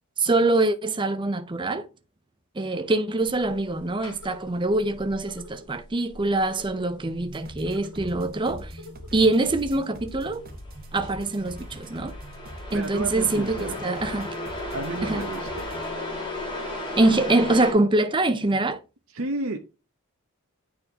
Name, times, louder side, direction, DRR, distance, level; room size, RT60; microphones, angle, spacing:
voice 1, 0.2-1.9 2.5-8.8 9.1-10.4 10.9-12.2 12.7-14.3 15.0-15.2 17.0-18.8, right 2 dB, 20° right, 0.6 m, -24 dB
sound 1, 3.2-17.7, left 1 dB, 20° left, 1.9 m, -37 dB
sound 2, 3.4-3.8 4.2-4.6 5.3-5.7 6.5-6.9 7.6-8.3 8.8-9.3 9.9-10.6 11.1-11.3, left 1 dB, 60° left, 3.3 m, -47 dB
sound 3, 7.3-17.2, equal, 40° right, 1.2 m, -43 dB
voice 2, 12.7-13.8 14.7-15.7 16.6-16.9 19.1-19.6, right 2 dB, 65° right, 0.8 m, -32 dB
9.0 x 4.3 x 2.8 m
head